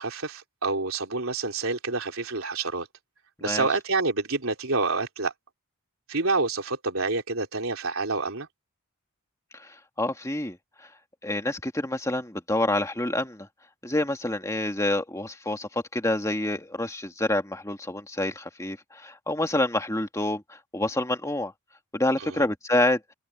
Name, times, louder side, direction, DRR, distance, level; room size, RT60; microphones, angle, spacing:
voice 1, 0.0-2.9 3.4-5.3 6.1-8.5 22.2-22.5, right 3 dB, 65° right, 3.7 m, -28 dB
voice 2, 9.5-10.6 11.2-13.5 13.8-21.5 21.9-23.0, left 1 dB, 15° left, 2.1 m, -27 dB
open air
head